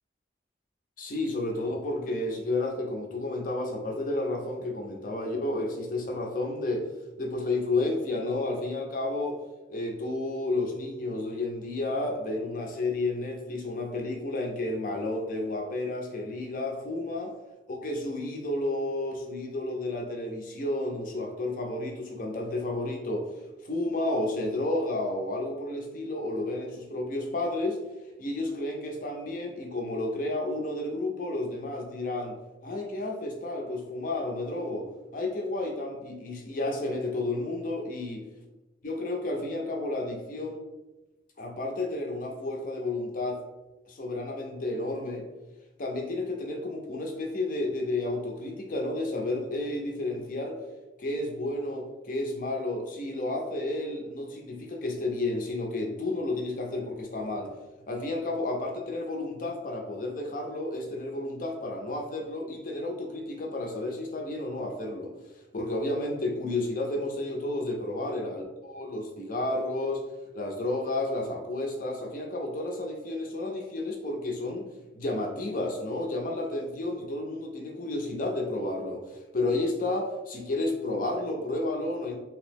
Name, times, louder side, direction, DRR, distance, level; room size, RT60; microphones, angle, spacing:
voice 1, 1.0-6.9 7.2-9.4 9.7-17.3 17.8-23.3 23.6-27.8 28.2-32.4 32.6-38.3 38.8-40.6 41.4-43.4 43.9-45.3 45.8-50.6 51.0-57.5 57.9-65.1 65.5-70.1 70.3-74.7 74.9-82.2, left 2 dB, 50° left, 2 dB, 0.5 m, -31 dB
2.8 x 2.0 x 3.3 m, 1.1 s
head